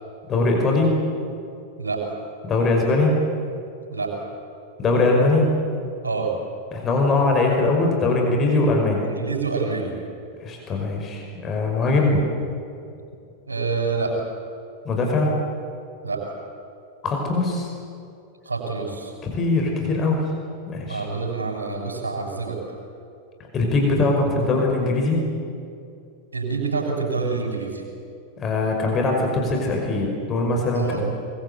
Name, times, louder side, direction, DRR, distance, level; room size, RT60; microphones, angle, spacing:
voice 1, 0.3-0.9 2.5-3.2 4.8-5.5 6.7-9.0 10.4-12.2 14.8-15.3 17.0-17.7 19.3-20.2 20.7-21.0 23.5-25.2 28.4-31.0, left 2 dB, 25° left, 1 dB, 5.5 m, -21 dB
voice 2, 9.1-9.9 13.5-14.1 16.0-16.2 18.4-19.1 20.9-22.6 26.3-27.8 30.7-31.0, right 4 dB, 75° right, 1 dB, 6.6 m, -27 dB
23.5 x 22.5 x 8.2 m, 2.5 s
figure-of-eight pair, 90°, 0 cm